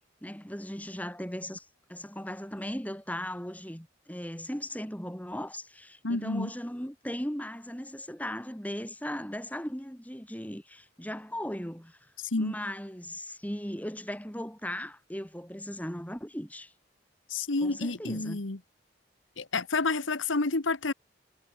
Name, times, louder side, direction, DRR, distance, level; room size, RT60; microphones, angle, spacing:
voice 1, 0.2-12.0 12.4-16.7 17.6-18.4, equal, 10° left, 5.8 m, -37 dB
voice 2, 6.0-6.5 12.2-12.5 17.3-18.6 19.4-20.9, left 3 dB, 85° left, 1.5 m, -29 dB
head